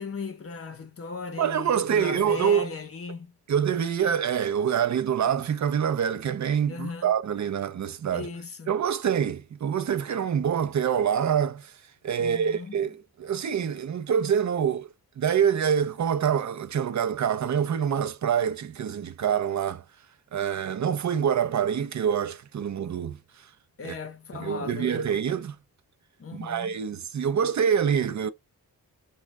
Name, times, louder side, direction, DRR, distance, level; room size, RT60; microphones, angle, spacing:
voice 1, 0.0-3.3 6.7-7.1 8.1-8.7 12.2-12.8 23.8-25.2 26.2-26.8, left 4 dB, 40° left, 0.7 m, -37 dB
voice 2, 1.4-2.7 3.5-8.3 8.7-11.7 12.0-14.9 15.2-19.8 20.3-23.2 23.8-24.0 24.3-25.6 26.3-28.3, right 8 dB, 50° right, 0.4 m, -26 dB
3.1 x 2.2 x 3.4 m
wide cardioid pair, 160°, 37 cm